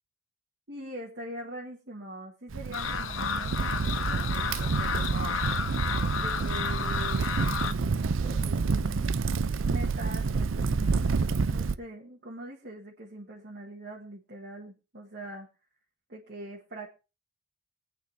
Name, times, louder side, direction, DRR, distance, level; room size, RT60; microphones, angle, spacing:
voice 1, 0.7-5.4 6.1-9.1 9.6-11.1 11.5-15.5 16.1-16.9, right 1 dB, 55° right, -3 dB, 1.6 m, -42 dB
Crackle, 2.5-11.7, right 4 dB, 85° right, 0.6 m, -28 dB
sound 1, 2.7-7.7, left 6 dB, 90° left, 0.9 m, -32 dB
23.0 x 8.8 x 2.7 m, 0.31 s
head